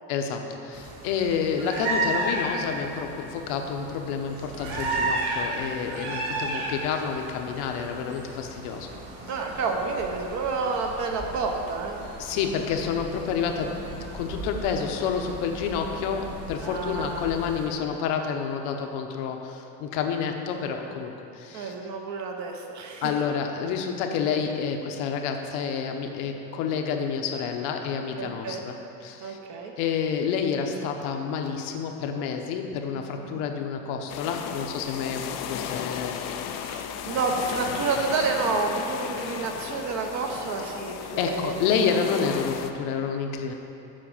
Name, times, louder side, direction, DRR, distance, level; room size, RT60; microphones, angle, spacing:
voice 1, 0.1-8.9 12.2-21.7 23.0-28.8 29.0-29.4 29.8-36.2 41.2-43.5, left 6 dB, 75° left, 4 dB, 1.0 m, -29 dB
sound 1, 0.7-17.7, right 2 dB, 85° right, 2.0 m, -34 dB
voice 2, 9.3-12.0 16.6-17.3 21.5-23.1 28.2-28.6 29.2-29.7 33.2-33.4 35.9-42.0, right 4 dB, 45° right, 2 dB, 1.0 m, -30 dB
sound 2, 34.1-42.7, left 8 dB, 40° left, 0.4 m, -35 dB
7.6 x 5.1 x 7.2 m, 2.8 s
cardioid pair, 160°, 41 cm